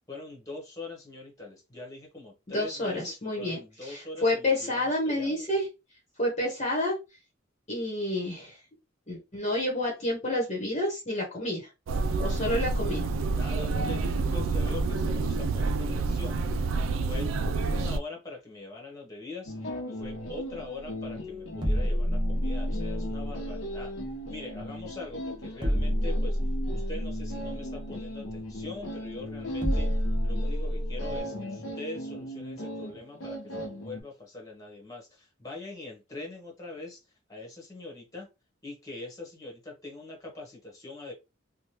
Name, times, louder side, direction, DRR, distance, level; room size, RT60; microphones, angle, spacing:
voice 1, 0.1-5.4 12.4-12.8 13.3-16.4 17.1-19.6 19.9-23.9 24.3-26.4 26.7-29.9 30.2-37.0 37.3-38.3 38.6-41.1, left 2 dB, 20° left, 1.2 m, -42 dB
voice 2, 2.5-5.7 6.2-6.9 7.7-8.6 9.1-11.7 12.2-13.0, left 1 dB, 35° left, 1.0 m, -29 dB
sound 1, 11.9-18.0, right 3 dB, 90° right, 0.4 m, -28 dB
sound 2, 19.5-34.0, equal, 85° left, 0.8 m, -38 dB
sound 3, 20.4-31.2, equal, 25° right, 0.8 m, -30 dB
3.3 x 2.2 x 2.9 m
head